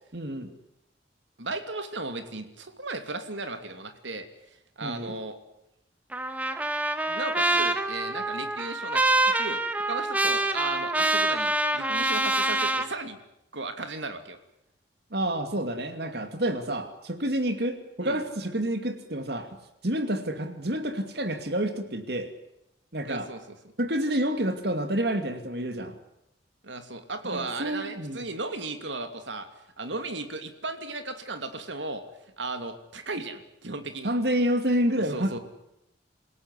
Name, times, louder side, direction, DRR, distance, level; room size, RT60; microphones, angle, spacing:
voice 1, 0.1-0.5 4.8-5.1 15.1-19.5 19.8-22.3 22.9-23.3 23.8-26.0 27.2-28.2 34.0-35.4, right 1 dB, 60° right, 8 dB, 2.6 m, -28 dB
voice 2, 1.4-4.3 4.8-5.4 7.1-13.2 13.5-14.4 18.0-18.2 23.0-23.4 26.6-29.5 29.8-32.0 32.4-34.1 35.0-35.4, right 3 dB, 80° right, 8 dB, 2.8 m, -36 dB
Trumpet, 6.1-12.9, right 2 dB, 10° right, 1.5 m, -26 dB
28.0 x 16.5 x 9.9 m, 0.84 s
head